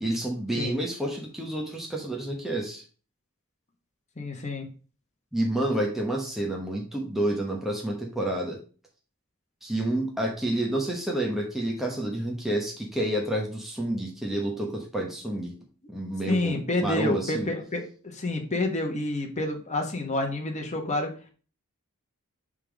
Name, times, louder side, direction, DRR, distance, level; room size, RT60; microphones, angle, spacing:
voice 1, 0.0-2.8 5.3-8.6 9.6-15.5 15.9-17.5, right 1 dB, ahead, -2 dB, 1.0 m, -29 dB
voice 2, 4.2-4.7 16.3-21.1, left 2 dB, 30° left, 2 dB, 1.1 m, -28 dB
5.3 x 3.7 x 5.1 m, 0.38 s
head